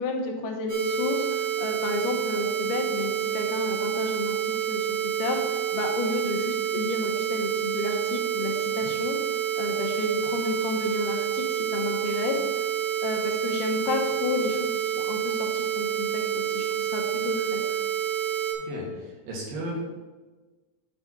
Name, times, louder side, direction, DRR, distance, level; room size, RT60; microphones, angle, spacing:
voice 1, 0.0-9.2 9.6-12.4 13.0-17.8, left 4 dB, 70° left, 1 dB, 2.6 m, -31 dB
sound 1, 0.7-18.5, right 10 dB, 45° right, 2.1 m, -28 dB
voice 2, 18.6-19.9, right 1 dB, 85° right, -2 dB, 3.6 m, -35 dB
9.1 x 4.2 x 6.0 m, 1.3 s
omnidirectional pair, 4.0 m